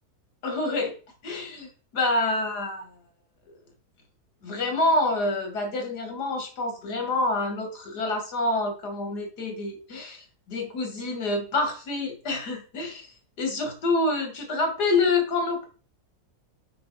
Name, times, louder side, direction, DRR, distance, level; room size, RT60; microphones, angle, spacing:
voice 1, 0.4-0.9 1.2-1.7 1.9-2.8 4.4-13.1 13.4-15.7, left 2 dB, 85° left, 4 dB, 2.4 m, -27 dB
6.9 x 5.4 x 4.1 m, 0.37 s
omnidirectional pair, 1.7 m